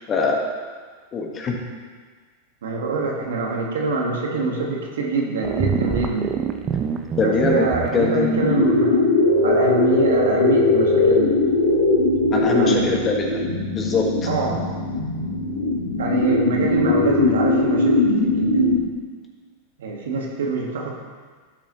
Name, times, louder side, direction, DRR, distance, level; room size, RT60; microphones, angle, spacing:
voice 1, 0.1-0.5 1.1-1.6 7.2-7.7 7.9-8.5 12.3-13.5 13.8-14.3, left 4 dB, 30° left, 0 dB, 1.6 m, -22 dB
voice 2, 2.6-6.4 7.2-9.0 9.4-11.4 12.5-13.0 14.3-14.6 16.0-18.6 19.8-20.9, right 3 dB, 75° right, -1 dB, 1.7 m, -25 dB
sound 1, 5.4-7.9, right 7 dB, 30° right, 0.7 m, -25 dB
sound 2, 8.3-18.8, left 2 dB, 85° left, 1.5 m, -20 dB
12.0 x 6.8 x 3.1 m, 1.5 s
hypercardioid pair, 100°, 0 cm